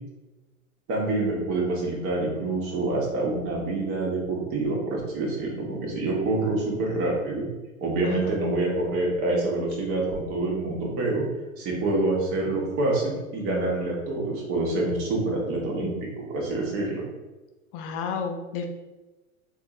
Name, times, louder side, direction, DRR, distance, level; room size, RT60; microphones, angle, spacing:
voice 1, 0.9-7.5 7.8-11.2 11.6-17.0, right 2 dB, 30° right, -3 dB, 1.1 m, -26 dB
voice 2, 17.7-18.7, left 6 dB, 40° left, 4 dB, 0.6 m, -31 dB
4.1 x 2.6 x 3.0 m, 1.1 s
figure-of-eight pair, 100°, 43 cm